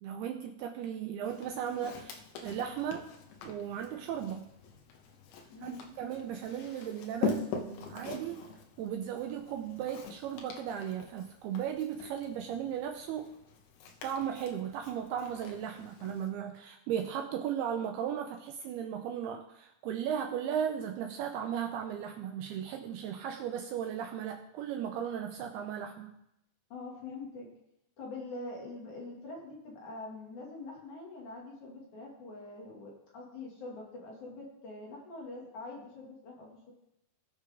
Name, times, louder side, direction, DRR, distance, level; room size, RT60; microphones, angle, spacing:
voice 1, 0.0-3.1 3.4-4.5 5.6-8.5 8.8-13.3 14.0-26.2, right 9 dB, 85° right, 4 dB, 2.3 m, -36 dB
Walk footsteps, 1.2-16.3, left 5 dB, 90° left, 3.3 m, -43 dB
voice 2, 5.5-5.9 12.6-12.7 26.7-27.5 28.0-36.7, left 2 dB, 50° left, -3 dB, 3.2 m, -44 dB
19.0 x 6.5 x 3.6 m, 0.82 s
omnidirectional pair, 5.1 m